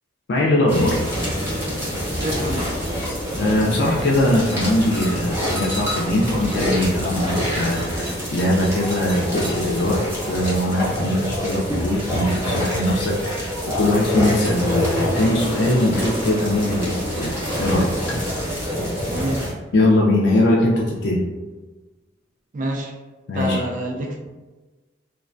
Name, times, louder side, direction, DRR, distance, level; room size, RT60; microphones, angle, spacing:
voice 1, 0.3-1.0 3.4-17.9 19.7-21.2 23.3-23.6, left 1 dB, 60° left, -3 dB, 0.4 m, -21 dB
sound 1, 0.7-19.5, equal, 15° right, 0.8 m, -26 dB
voice 2, 2.2-2.8 19.1-19.5 22.5-22.9 23.3-24.4, right 1 dB, 45° right, 0 dB, 0.3 m, -27 dB
2.3 x 2.1 x 2.4 m, 1.2 s
head